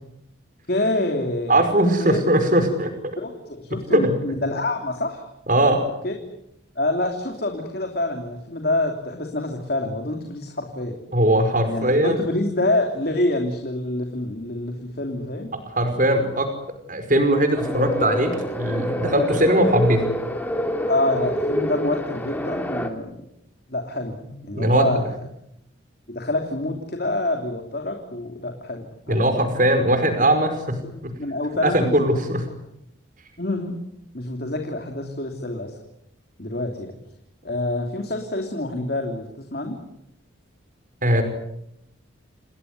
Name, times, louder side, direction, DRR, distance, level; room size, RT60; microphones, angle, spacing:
voice 1, 0.7-1.6 2.0-2.2 3.2-5.2 6.0-6.2 6.7-11.0 11.7-15.5 20.9-23.2 23.7-24.2 24.4-25.1 26.1-29.3 30.8-30.9 31.2-31.9 33.4-33.8 34.1-35.8 36.4-36.9 37.4-39.8, left 2 dB, 50° left, 3 dB, 3.2 m, -26 dB
voice 2, 1.5-2.9 3.9-4.2 5.5-5.8 11.1-12.2 15.7-16.5 16.9-20.0 24.5-24.9 29.1-31.1 31.6-32.5 41.0-41.2, right 1 dB, 40° right, 8 dB, 5.2 m, -20 dB
sound 1, 17.5-22.9, equal, 10° left, 2.8 m, -26 dB
29.0 x 19.5 x 9.7 m, 0.82 s
head